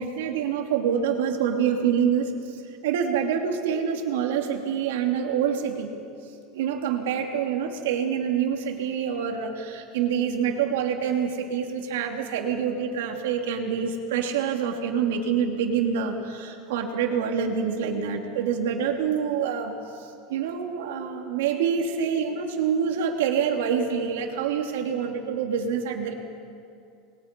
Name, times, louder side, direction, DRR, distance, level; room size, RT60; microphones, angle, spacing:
voice 1, 0.0-6.0 6.5-19.7 20.3-26.1, right 7 dB, 90° right, 2 dB, 3.0 m, -26 dB
28.0 x 22.0 x 5.5 m, 2.5 s
supercardioid pair, 170°, 0 cm